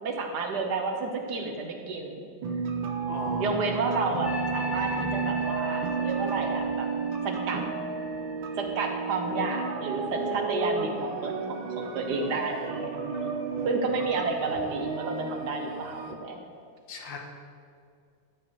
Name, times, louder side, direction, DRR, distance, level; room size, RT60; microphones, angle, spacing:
voice 1, 0.0-2.3 3.4-6.9 7.2-7.6 8.6-12.9 13.6-16.4, right 3 dB, 65° right, 3 dB, 1.4 m, -31 dB
sound 1, 2.4-16.1, right 5 dB, 85° right, 1.6 m, -32 dB
voice 2, 3.1-3.6 13.6-13.7 16.9-17.2, left 3 dB, 70° left, 2 dB, 1.8 m, -37 dB
sound 2, 4.2-9.5 10.1-10.3, left 3 dB, 40° left, 0.7 m, -39 dB
12.0 x 4.7 x 6.2 m, 2.3 s
omnidirectional pair, 2.1 m